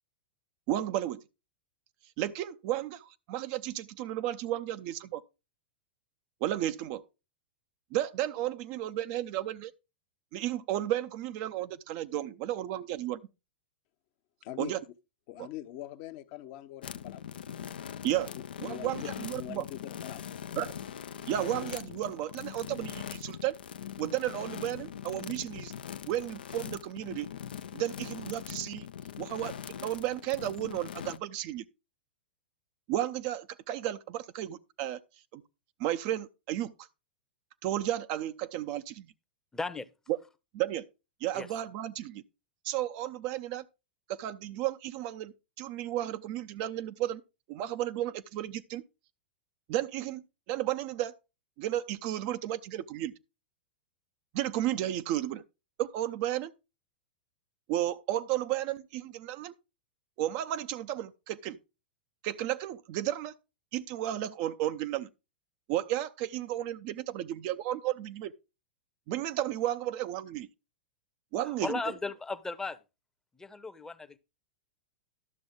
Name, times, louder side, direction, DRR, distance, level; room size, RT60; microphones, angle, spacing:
voice 1, 0.7-1.2 2.2-5.2 6.4-7.0 7.9-9.7 10.3-13.2 14.6-14.8 18.0-18.3 18.6-19.6 20.6-20.7 21.3-23.5 24.0-25.7 26.1-27.3 27.7-28.9 29.2-29.6 29.8-31.6 32.9-35.0 35.3-35.4 35.8-36.7 37.6-39.1 40.5-40.9 41.2-42.2 42.6-43.6 44.1-47.2 47.5-48.8 49.7-51.2 51.6-53.1 54.3-55.4 55.8-56.5 57.7-59.5 60.2-61.6 62.2-63.3 63.7-65.1 65.7-68.3 69.1-70.5 71.3-71.8, right 13 dB, 45° right, 0.6 m, -33 dB
voice 2, 14.4-14.8 15.3-17.6 18.3-20.7, left 13 dB, 45° left, 0.9 m, -44 dB
sound 1, 16.8-31.2, left 9 dB, 70° left, 0.5 m, -41 dB
voice 3, 39.5-39.9 41.3-41.5 71.4-72.8 73.4-74.2, left 3 dB, 10° left, 0.8 m, -36 dB
12.0 x 6.9 x 3.7 m
figure-of-eight pair, 95°, 5 cm